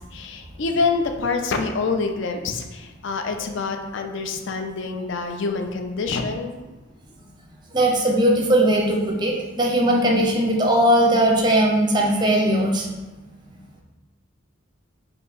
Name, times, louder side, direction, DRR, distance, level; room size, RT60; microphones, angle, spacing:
voice 1, 0.0-6.6, left 4 dB, 60° left, 5 dB, 0.4 m, -26 dB
voice 2, 7.7-12.9, right 1 dB, 20° right, 0 dB, 0.5 m, -19 dB
3.4 x 2.8 x 4.0 m, 1.2 s
head